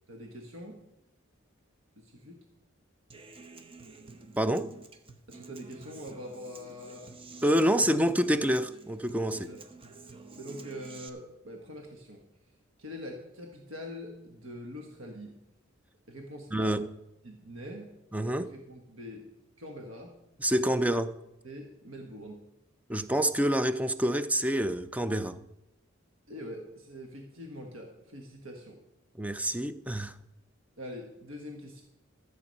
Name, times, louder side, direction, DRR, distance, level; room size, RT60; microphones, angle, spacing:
voice 1, 0.1-0.8 1.9-2.4 5.3-7.2 7.8-7.9 9.4-9.6 10.0-12.2 12.8-15.4 16.1-16.8 17.2-17.9 18.4-19.3 19.6-20.1 21.4-22.4 26.3-28.8 30.8-31.8, equal, 80° right, 2 dB, 1.7 m, -44 dB
Human voice / Acoustic guitar, 3.1-11.1, right 3 dB, 25° right, 0.9 m, -50 dB
voice 2, 4.4-4.7 7.4-9.5 16.5-16.9 18.1-18.5 20.4-21.1 22.9-25.4 29.2-30.1, right 1 dB, 5° right, 12 dB, 0.5 m, -27 dB
14.0 x 8.0 x 5.5 m, 0.91 s
head